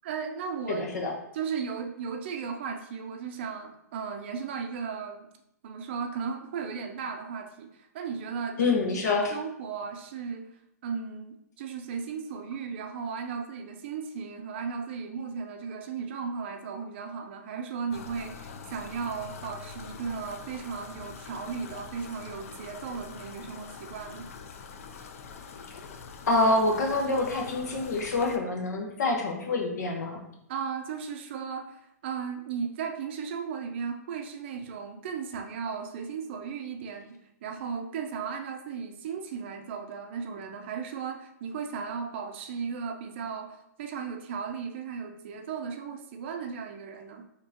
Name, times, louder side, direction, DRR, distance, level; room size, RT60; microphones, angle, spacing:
voice 1, 0.0-0.9 1.3-5.3 5.6-10.5 10.8-24.3 30.5-47.3, right 6 dB, 40° right, 5 dB, 0.5 m, -36 dB
voice 2, 0.7-1.1 8.6-9.3 26.3-30.2, left 2 dB, 75° left, 1 dB, 1.2 m, -26 dB
sound 1, 17.9-28.4, left 5 dB, 55° left, 0.5 m, -44 dB
5.3 x 2.9 x 2.8 m, 0.77 s
hypercardioid pair, 160°, 9 cm